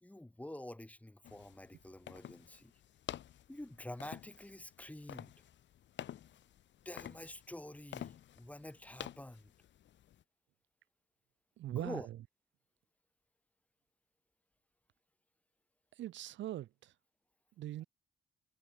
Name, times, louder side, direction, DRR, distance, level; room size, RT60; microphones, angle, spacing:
voice 1, 0.0-2.7 3.5-5.3 6.8-9.5 11.7-12.1, left 1 dB, 5° left, 1.2 m, -48 dB
sound 1, 1.2-10.2, left 11 dB, 65° left, 1.5 m, -50 dB
voice 2, 11.6-12.2 16.0-16.9 17.6-17.8, right 13 dB, 70° right, 0.7 m, -41 dB
cardioid pair, 90°, 20 cm